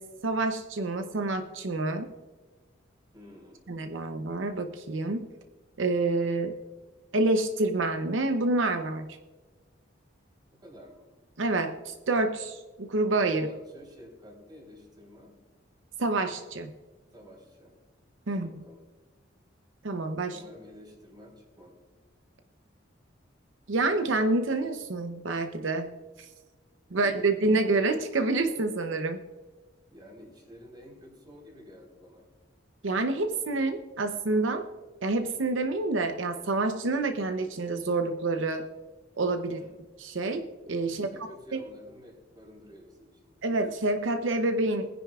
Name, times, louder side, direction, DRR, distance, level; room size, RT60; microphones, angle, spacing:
voice 1, 0.0-2.1 3.7-5.3 5.8-6.5 7.1-9.2 11.4-13.5 16.0-16.7 18.3-18.5 19.8-20.4 23.7-25.9 26.2-26.3 26.9-29.2 32.8-34.7 35.0-38.7 39.2-39.6 40.0-41.1 41.5-41.6 43.4-44.9, right 2 dB, 80° right, 7 dB, 0.7 m, -28 dB
voice 2, 3.1-3.6 10.5-11.1 13.3-15.4 17.1-17.7 18.3-18.8 20.3-21.7 26.9-27.4 29.9-32.3 39.4-39.7 40.8-43.4, equal, 25° right, -1 dB, 3.7 m, -51 dB
21.5 x 10.5 x 2.4 m, 1.3 s
head